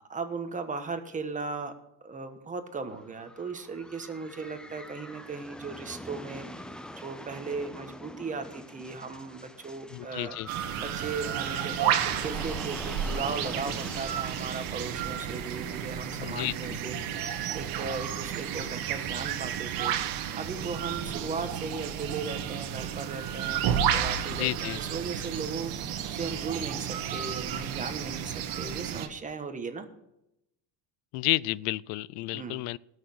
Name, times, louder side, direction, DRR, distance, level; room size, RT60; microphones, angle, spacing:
voice 1, 0.1-1.7 2.0-6.6 6.9-10.4 10.8-17.2 17.5-19.9 20.3-25.7 26.1-29.9 32.3-32.6, right 4 dB, 20° right, 1.3 m, -37 dB
sound 1, 2.9-19.5, left 1 dB, ahead, 0.4 m, -45 dB
voice 2, 9.9-10.5 16.2-16.8 24.4-24.8 31.1-32.8, left 19 dB, 80° left, 0.5 m, -31 dB
sound 2, 10.5-29.1, right 9 dB, 60° right, 1.4 m, -32 dB
18.5 x 6.5 x 6.4 m
cardioid pair, 155°, 41 cm